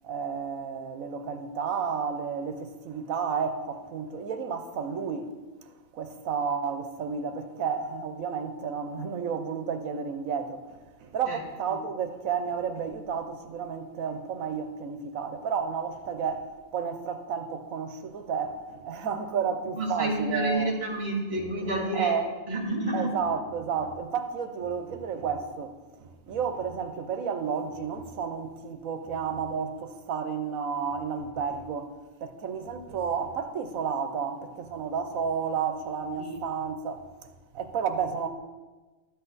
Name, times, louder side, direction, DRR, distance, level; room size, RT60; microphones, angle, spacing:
voice 1, 0.0-5.3 5.9-20.7 21.9-22.3 22.9-25.7 26.0-31.9 32.2-37.0 37.5-38.3, right 6 dB, 85° right, 1.2 m, -31 dB
voice 2, 19.8-22.1 22.5-23.1 36.2-36.3, right 1 dB, 45° right, 2.7 m, -29 dB
13.0 x 8.2 x 4.1 m
omnidirectional pair, 1.4 m